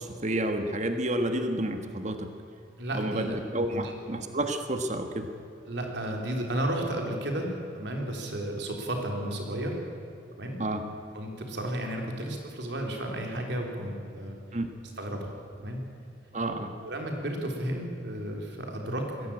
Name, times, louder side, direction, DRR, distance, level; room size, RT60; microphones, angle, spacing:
voice 1, 0.0-2.3 2.9-5.3 10.6-10.9 14.5-14.7 16.3-16.7, right 1 dB, 40° right, 6 dB, 1.5 m, -30 dB
voice 2, 2.8-3.3 3.7-3.8 5.7-9.8 10.4-10.6 11.1-14.4 15.0-15.3 15.6-15.8 16.8-19.3, right 1 dB, 65° right, 2 dB, 3.7 m, -33 dB
21.5 x 16.0 x 8.8 m, 2.6 s
head